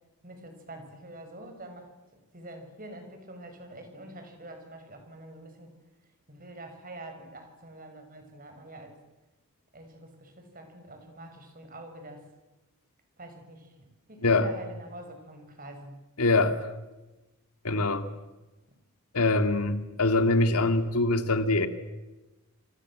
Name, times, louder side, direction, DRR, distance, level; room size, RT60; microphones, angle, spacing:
voice 1, 0.2-5.7 6.3-9.0 9.7-12.2 13.2-16.0, right 1 dB, 40° right, 6 dB, 6.1 m, -46 dB
voice 2, 16.2-16.6 17.6-18.1 19.1-21.7, left 2 dB, 85° left, 9 dB, 2.2 m, -24 dB
28.5 x 26.0 x 7.6 m, 1.1 s
head